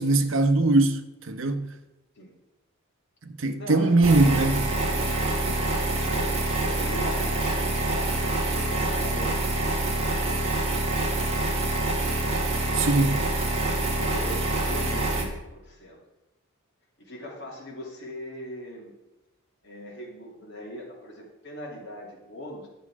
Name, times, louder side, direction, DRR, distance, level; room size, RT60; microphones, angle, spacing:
voice 1, 0.0-1.7 3.4-4.6 12.8-13.3, right 2 dB, 60° right, 0.8 m, -21 dB
voice 2, 3.6-10.1 11.0-11.3 13.7-16.0 17.0-18.9 19.6-22.7, left 1 dB, 55° left, 2.7 m, -41 dB
sound 1, 4.0-15.2, right 2 dB, 30° right, 1.7 m, -26 dB
10.5 x 7.4 x 4.8 m
head